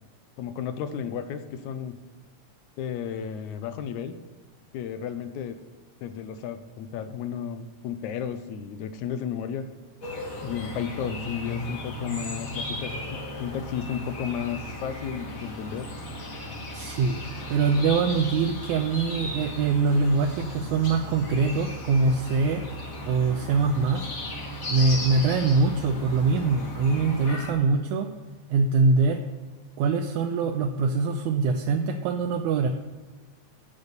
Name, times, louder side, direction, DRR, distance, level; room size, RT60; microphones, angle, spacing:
voice 1, 0.4-2.0 2.8-4.1 4.7-5.6 6.0-9.6 10.4-15.9, left 8 dB, 75° left, 10 dB, 2.0 m, -33 dB
sound 1, 10.0-27.5, left 1 dB, 35° left, 1.4 m, -36 dB
voice 2, 16.7-17.2 17.5-22.6 23.0-24.1 24.7-28.1 28.5-29.2 29.8-32.7, right 4 dB, 80° right, 4 dB, 1.9 m, -23 dB
12.0 x 5.4 x 8.0 m, 1.4 s
omnidirectional pair, 3.6 m